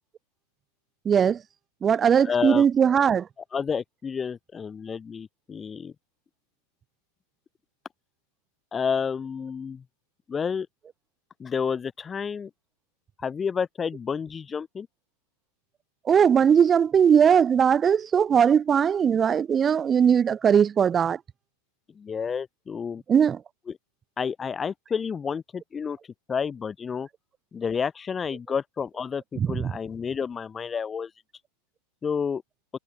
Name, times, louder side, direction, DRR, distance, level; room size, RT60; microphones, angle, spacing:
voice 1, 1.0-1.4 1.8-3.3 16.0-21.2 23.1-23.4 29.4-29.7, right 7 dB, 20° right, 3.1 m, -20 dB
voice 2, 2.2-2.6 3.5-5.9 8.7-9.8 10.3-10.7 11.4-12.5 13.2-14.9 21.9-23.0 24.2-26.0 26.3-27.1 27.5-31.1 32.0-32.4, left 6 dB, 20° left, 6.5 m, -30 dB
figure-of-eight pair, 90°, 0 cm